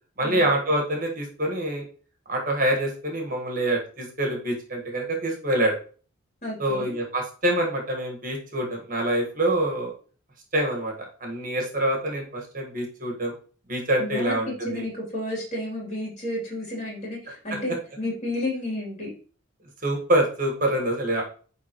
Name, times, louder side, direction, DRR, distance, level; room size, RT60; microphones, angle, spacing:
voice 1, 0.2-1.8 2.3-5.7 6.6-9.9 10.5-13.3 13.7-14.8 19.8-21.2, right 1 dB, 40° right, 1 dB, 1.6 m, -26 dB
voice 2, 6.4-6.9 14.0-19.1, left 1 dB, 35° left, -3 dB, 3.1 m, -31 dB
9.6 x 3.6 x 3.0 m, 0.40 s
head